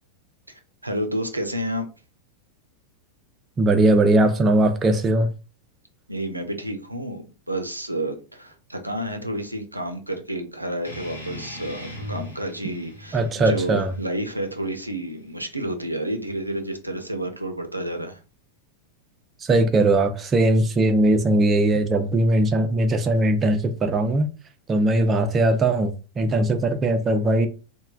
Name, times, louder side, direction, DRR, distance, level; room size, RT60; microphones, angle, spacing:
voice 1, 0.5-1.9 6.1-18.2, right 1 dB, 85° right, 0.4 m, -30 dB
voice 2, 3.6-5.3 13.1-13.9 19.4-24.3 24.7-27.5, right 2 dB, 20° right, 0.4 m, -20 dB
sound 1, 10.8-15.9, left 1 dB, 80° left, 0.9 m, -40 dB
3.0 x 2.1 x 2.4 m
figure-of-eight pair, 90°, 0 cm